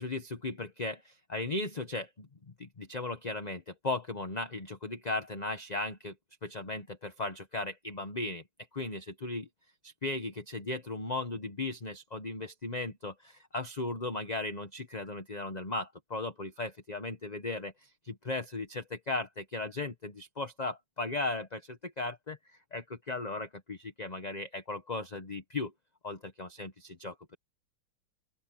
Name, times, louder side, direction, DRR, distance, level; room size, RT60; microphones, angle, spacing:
voice 1, 0.0-2.3 2.6-6.1 6.4-8.4 8.7-9.5 9.8-22.4 22.7-25.7 26.0-27.4, left 2 dB, 25° left, 1.0 m, -37 dB
open air
omnidirectional pair, 2.2 m